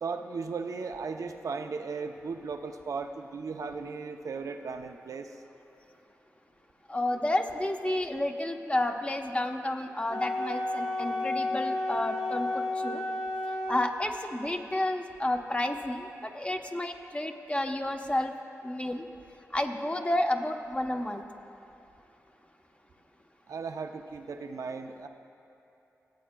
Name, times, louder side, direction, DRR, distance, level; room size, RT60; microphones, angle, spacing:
voice 1, 0.0-5.3 23.5-25.1, right 4 dB, 75° right, 5 dB, 0.5 m, -36 dB
voice 2, 6.9-13.0 13.7-18.3 18.6-19.1 19.5-21.2, left 1 dB, 20° left, 4 dB, 0.9 m, -31 dB
Wind instrument woodwind instrument, 10.1-14.0, left 2 dB, 70° left, 0.9 m, -32 dB
24.5 x 8.4 x 2.2 m, 2.9 s
cardioid pair, 45°, 6 cm